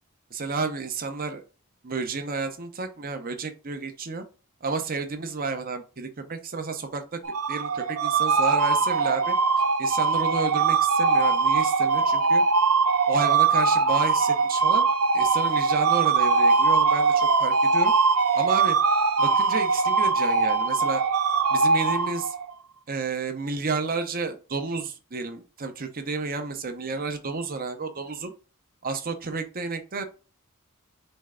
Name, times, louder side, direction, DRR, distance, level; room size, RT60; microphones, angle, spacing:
voice 1, 0.3-1.4 1.8-4.2 4.6-7.2 7.5-9.3 9.8-12.4 13.1-14.9 15.1-17.9 18.4-18.8 19.2-21.0 21.5-22.3 22.9-28.3 28.8-30.0, right 4 dB, 45° right, 7 dB, 0.8 m, -31 dB
sound 1, 7.2-22.5, right 4 dB, 90° right, 0.6 m, -22 dB
4.5 x 3.2 x 3.7 m, 0.33 s
head